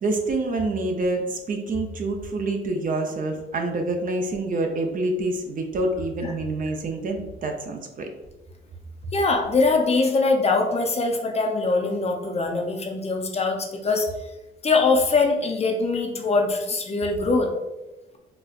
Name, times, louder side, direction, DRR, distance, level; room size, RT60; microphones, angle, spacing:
voice 1, 0.0-8.1, right 2 dB, 45° right, 3 dB, 0.5 m, -27 dB
voice 2, 9.1-14.1 14.6-17.5, left 3 dB, 30° left, 2 dB, 0.5 m, -22 dB
4.2 x 2.2 x 2.4 m, 1.1 s
cardioid pair, 90°, 20 cm